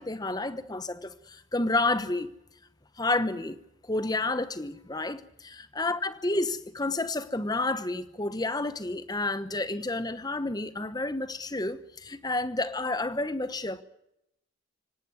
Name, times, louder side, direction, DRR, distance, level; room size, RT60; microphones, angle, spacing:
voice 1, 0.0-2.3 3.0-3.6 3.9-13.8, left 2 dB, 20° left, 1.0 m, -30 dB
24.5 x 18.0 x 9.5 m
head